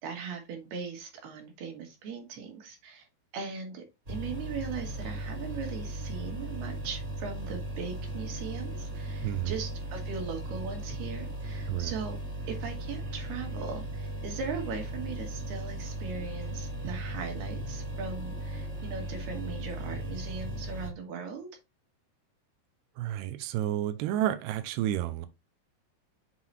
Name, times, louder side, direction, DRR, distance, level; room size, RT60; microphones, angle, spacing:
voice 1, 0.0-3.1 3.3-12.2 12.5-21.5, right 5 dB, 70° right, 3.7 m, -39 dB
sound 1, 4.1-20.9, right 1 dB, 45° right, 0.9 m, -37 dB
voice 2, 9.2-9.6 11.7-11.9 23.0-25.3, right 12 dB, 85° right, 2.6 m, -31 dB
7.5 x 4.0 x 4.2 m
omnidirectional pair, 4.8 m